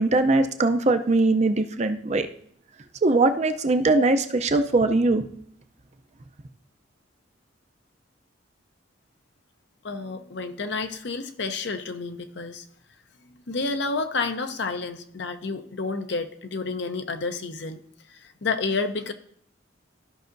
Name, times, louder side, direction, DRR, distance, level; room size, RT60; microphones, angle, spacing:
voice 1, 0.0-2.3 3.0-5.2, right 2 dB, 35° right, 7 dB, 0.5 m, -21 dB
voice 2, 9.8-12.6 13.3-17.8 18.1-19.1, left 4 dB, 65° left, 8 dB, 0.7 m, -30 dB
14.0 x 5.6 x 2.6 m, 0.66 s
head